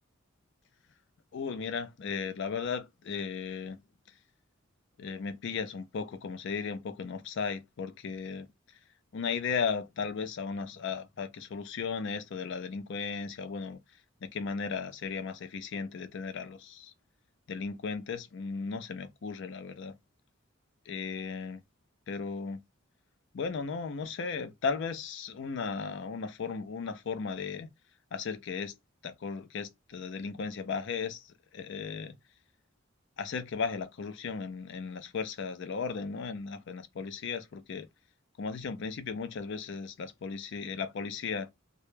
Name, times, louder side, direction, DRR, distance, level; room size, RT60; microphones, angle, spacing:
voice 1, 1.3-3.8 5.0-8.5 9.1-13.8 14.2-16.9 17.5-19.9 20.9-21.6 22.1-22.6 23.3-27.7 28.1-28.7 29.0-32.2 33.2-37.9 38.4-41.5, left 5 dB, 60° left, 0.4 m, -36 dB
2.2 x 2.0 x 3.1 m
head